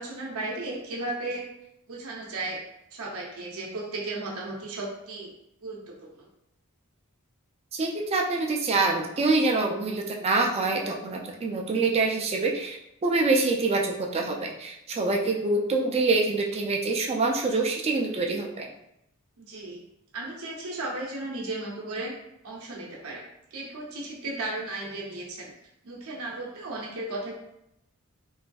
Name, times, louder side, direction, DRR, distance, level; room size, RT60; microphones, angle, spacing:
voice 1, 0.0-1.5 1.9-2.7 2.9-5.3 5.6-6.3 15.2-15.3 19.4-19.8 20.1-22.2 22.4-23.2 23.5-25.5 25.8-27.3, right 2 dB, 75° right, -2 dB, 0.6 m, -35 dB
voice 2, 7.7-18.7, right 3 dB, 30° right, 1 dB, 0.3 m, -25 dB
3.1 x 2.5 x 2.3 m, 0.80 s
head